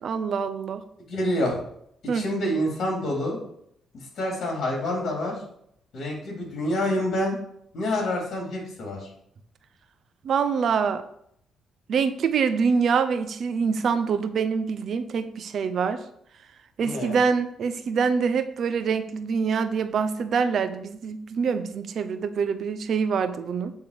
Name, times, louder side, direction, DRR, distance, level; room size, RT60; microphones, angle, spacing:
voice 1, 0.0-0.8 2.1-2.3 10.2-11.0 11.9-16.0 16.8-23.7, right 6 dB, 60° right, 10 dB, 0.8 m, -25 dB
voice 2, 1.1-1.6 2.1-3.4 3.9-5.3 5.9-7.4 7.7-9.1 16.8-17.2, left 1 dB, 60° left, -1 dB, 3.4 m, -27 dB
8.6 x 3.9 x 6.9 m, 0.71 s
cardioid pair, 90°, 0 cm